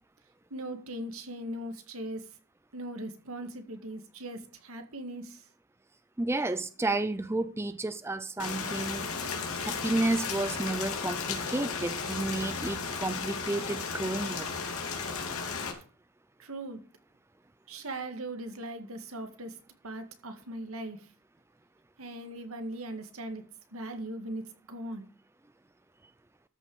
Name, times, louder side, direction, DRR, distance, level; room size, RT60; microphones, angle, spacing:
voice 1, 0.5-2.3 2.7-5.5 16.4-16.8 17.7-19.6 19.8-21.1 22.0-23.4 23.7-25.1, right 1 dB, 80° right, 1.9 m, -39 dB
voice 2, 6.2-9.1 9.6-14.5, right 2 dB, 10° right, 0.5 m, -31 dB
Rain, 8.4-15.7, left 5 dB, 90° left, 2.4 m, -34 dB
13.5 x 5.9 x 5.4 m
head